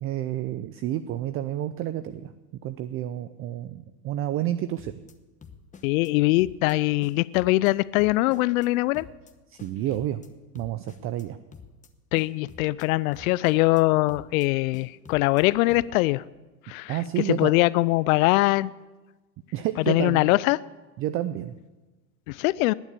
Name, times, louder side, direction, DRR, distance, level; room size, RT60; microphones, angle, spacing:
voice 1, 0.0-2.3 2.6-5.0 9.5-10.2 10.5-11.4 16.9-17.5 19.5-20.3 21.0-21.5, right 12 dB, 30° right, 13 dB, 0.4 m, -30 dB
sound 1, 4.8-5.1 5.4-6.1 6.4-6.7 7.0-7.7 8.0-8.7 8.9-9.3 9.6-10.3 10.6-11.2 11.5-11.9 12.2-12.9 13.1-13.8 14.1-14.5 14.7-15.4 15.7-16.0, left 6 dB, 15° left, 1.0 m, -48 dB
voice 2, 5.8-9.1 12.1-16.2 16.7-17.0 17.3-18.7 19.9-20.6 22.3-22.7, left 20 dB, 60° left, 19 dB, 0.5 m, -22 dB
20.0 x 7.2 x 8.3 m, 1.2 s
hypercardioid pair, 110°, 49 cm